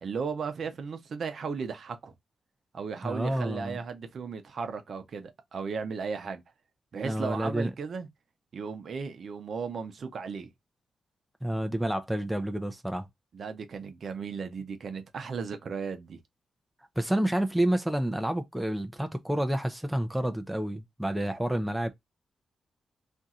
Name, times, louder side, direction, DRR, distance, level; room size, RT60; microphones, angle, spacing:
voice 1, 0.0-2.1 2.7-6.4 6.9-8.1 8.5-10.5 13.3-16.2, right 5 dB, 60° right, 0.7 m, -35 dB
voice 2, 3.0-3.8 7.0-7.7 11.4-13.1 17.0-21.9, right 1 dB, 5° right, 0.5 m, -29 dB
2.6 x 2.4 x 4.0 m
cardioid pair, 110°, 0 cm